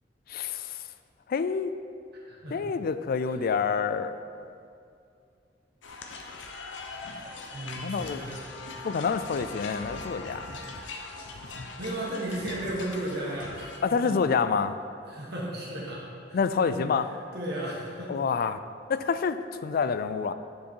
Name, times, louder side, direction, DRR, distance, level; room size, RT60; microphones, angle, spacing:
voice 1, 0.3-0.8 1.3-1.7 2.5-4.2 7.8-8.2 8.8-10.4 13.8-14.8 16.3-17.1 18.1-18.6 18.9-20.3, left 5 dB, 55° left, 12 dB, 0.3 m, -27 dB
voice 2, 2.3-2.6 3.2-3.3 7.5-8.5 11.8-14.1 15.1-18.1, right 1 dB, 60° right, -4 dB, 1.7 m, -35 dB
sound 1, 5.8-13.8, left 3 dB, 80° left, 0.8 m, -41 dB
10.0 x 4.7 x 4.5 m, 2.4 s
head